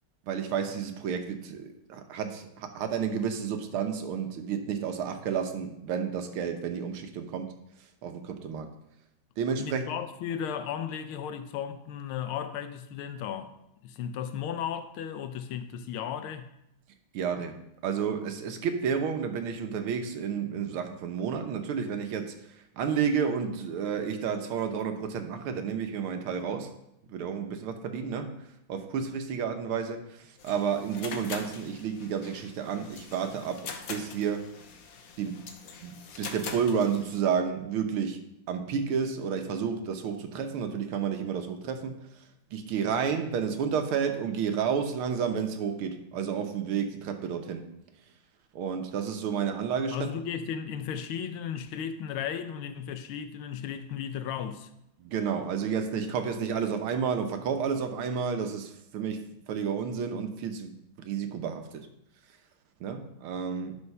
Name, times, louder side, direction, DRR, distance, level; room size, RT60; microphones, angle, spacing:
voice 1, 0.3-7.5 8.0-8.7 9.4-9.8 17.1-26.7 27.1-28.3 28.7-34.5 35.2-35.4 35.8-38.2 38.5-42.0 42.5-47.7 48.5-50.0 55.0-61.9 62.8-63.8, right 7 dB, 85° right, 1.8 m, -31 dB
voice 2, 9.6-13.5 13.8-16.5 49.9-54.7, left 8 dB, 85° left, 1.6 m, -35 dB
sound 1, 30.4-37.2, left 5 dB, 55° left, 1.1 m, -43 dB
12.0 x 4.4 x 5.5 m
omnidirectional pair, 2.3 m